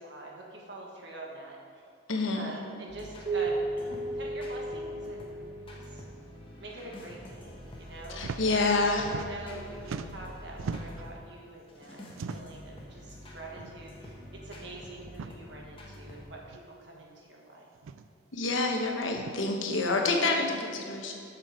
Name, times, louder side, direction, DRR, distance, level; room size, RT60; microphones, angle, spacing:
voice 1, 0.0-1.6 2.3-6.1 6.6-17.7 20.3-20.6, right 1 dB, 60° right, -1 dB, 1.5 m, -45 dB
voice 2, 2.1-2.5 8.1-9.1 18.3-21.2, left 3 dB, 75° left, 2 dB, 1.1 m, -28 dB
sound 1, 2.9-11.2 11.7-16.2, left 1 dB, 25° left, 1.1 m, -47 dB
Keyboard (musical), 3.3-6.2, right 2 dB, 25° right, 1.5 m, -34 dB
sound 2, 8.1-8.4 8.7-9.6 9.8-11.1 12.1-12.6 13.6-13.7 14.1-14.2 15.1-15.3 16.5-16.6 17.8-18.1 19.1-19.4, right 5 dB, 90° right, 0.4 m, -39 dB
7.6 x 6.6 x 4.9 m, 2.4 s
head